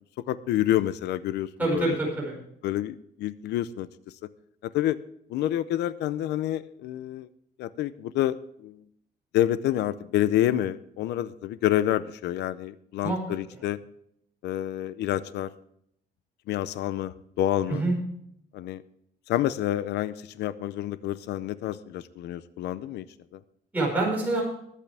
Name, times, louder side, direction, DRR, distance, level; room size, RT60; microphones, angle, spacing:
voice 1, 0.3-2.0 2.6-3.9 4.7-5.0 5.3-7.3 7.6-8.4 8.6-8.7 9.3-13.8 14.4-15.5 16.5-17.8 18.5-18.8 19.3-23.0, left 13 dB, 90° left, 15 dB, 0.6 m, -28 dB
voice 2, 1.6-2.4 13.0-13.2 13.5-13.6 17.7-18.0 23.7-24.4, right 2 dB, 10° right, -3 dB, 5.1 m, -26 dB
21.0 x 8.4 x 3.4 m, 0.71 s
cardioid pair, 180°, 17 cm